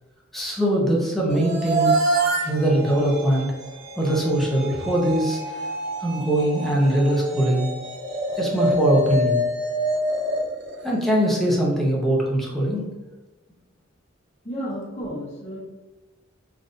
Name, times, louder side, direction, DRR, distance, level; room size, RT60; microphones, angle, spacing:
voice 1, 0.3-1.9 2.4-3.5 4.0-5.6 6.0-7.7 8.4-9.4 10.8-12.8, right 1 dB, ahead, -3 dB, 0.6 m, -21 dB
sound 1, 1.3-11.5, right 1 dB, 55° right, 0.6 m, -27 dB
voice 2, 14.4-15.6, equal, 35° left, -5 dB, 0.9 m, -32 dB
3.4 x 2.5 x 2.5 m, 1.1 s
head